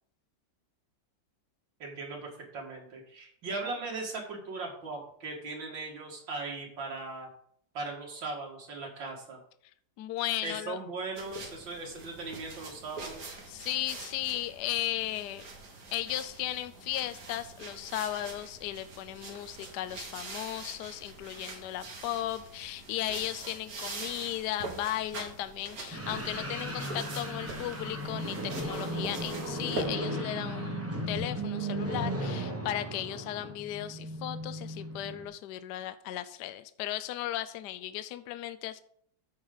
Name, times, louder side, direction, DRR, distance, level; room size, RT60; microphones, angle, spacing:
voice 1, 1.8-7.3 7.7-9.4 10.4-13.3, right 3 dB, 70° right, -1 dB, 2.7 m, -38 dB
voice 2, 10.0-10.8 13.5-15.4 15.9-38.8, left 13 dB, 75° left, 12 dB, 1.1 m, -36 dB
sound 1, 11.1-29.8, right 3 dB, 50° right, 2.0 m, -44 dB
sound 2, 25.9-35.3, right 1 dB, 10° right, 1.0 m, -36 dB
13.5 x 4.9 x 3.9 m, 0.64 s
omnidirectional pair, 2.1 m